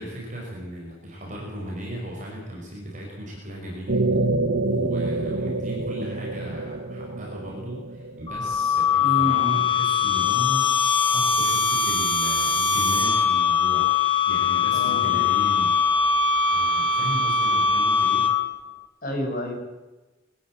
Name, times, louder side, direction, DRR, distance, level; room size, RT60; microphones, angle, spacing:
voice 1, 0.0-4.1 4.7-10.7 11.0-15.8 16.5-18.3, equal, 40° right, -2 dB, 5.5 m, -36 dB
sound 1, 3.9-9.0, right 2 dB, 80° right, 1.8 m, -27 dB
sound 2, 8.3-18.7, left 5 dB, 25° left, 2.0 m, -22 dB
voice 2, 9.0-9.5 14.7-15.2 19.0-19.6, equal, 45° left, 1 dB, 6.1 m, -29 dB
23.0 x 15.0 x 8.9 m, 1.1 s
head